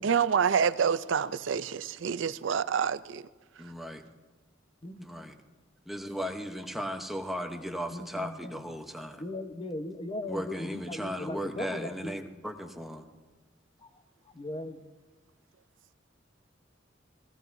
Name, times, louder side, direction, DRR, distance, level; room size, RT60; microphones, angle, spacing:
voice 1, 0.0-3.2, right 7 dB, 80° right, 14 dB, 0.5 m, -27 dB
voice 2, 3.6-4.0 5.0-5.3 5.9-9.2 10.3-13.1, equal, ahead, 4 dB, 0.9 m, -36 dB
voice 3, 7.9-8.7 9.2-12.2 13.8-13.9 14.3-14.9, left 1 dB, 30° left, 7 dB, 1.0 m, -38 dB
18.5 x 16.0 x 2.7 m, 1.3 s
head